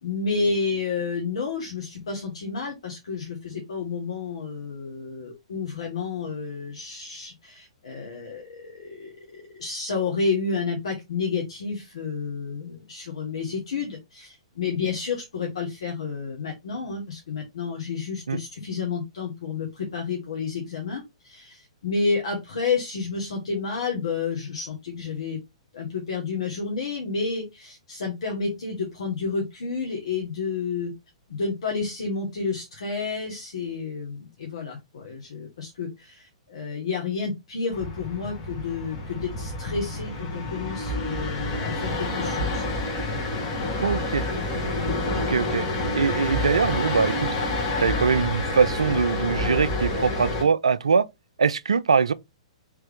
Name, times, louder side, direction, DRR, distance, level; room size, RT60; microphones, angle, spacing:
voice 1, 0.0-25.4 25.7-30.9 31.3-42.6 43.3-43.8 44.8-45.0, left 4 dB, 60° left, 1.0 m, -30 dB
sound 1, 37.7-50.4, left 2 dB, 35° left, 1.5 m, -28 dB
voice 2, 43.8-44.2 45.2-45.7 46.0-47.3 47.8-51.0 51.4-52.1, right 5 dB, 70° right, 0.3 m, -22 dB
3.4 x 3.2 x 3.3 m
figure-of-eight pair, 110°, 3 cm